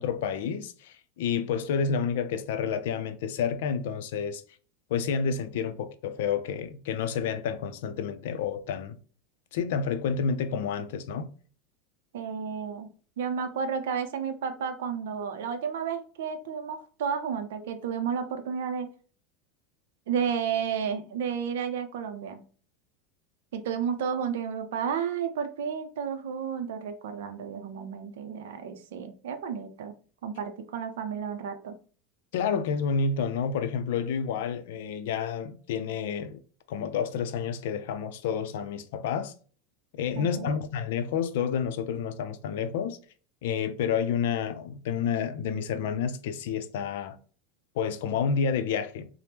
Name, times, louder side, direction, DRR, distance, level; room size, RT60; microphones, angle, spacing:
voice 1, 0.0-4.4 4.9-9.0 9.5-11.3 32.3-36.4 36.7-39.3 39.9-43.0 43.4-47.2 47.8-49.1, left 6 dB, 70° left, 0.4 m, -29 dB
voice 2, 12.1-12.9 13.2-18.9 20.1-22.4 23.5-29.9 30.2-31.7 40.1-40.6, right 7 dB, 85° right, 0.4 m, -32 dB
3.3 x 2.0 x 2.8 m
supercardioid pair, 170°, 0 cm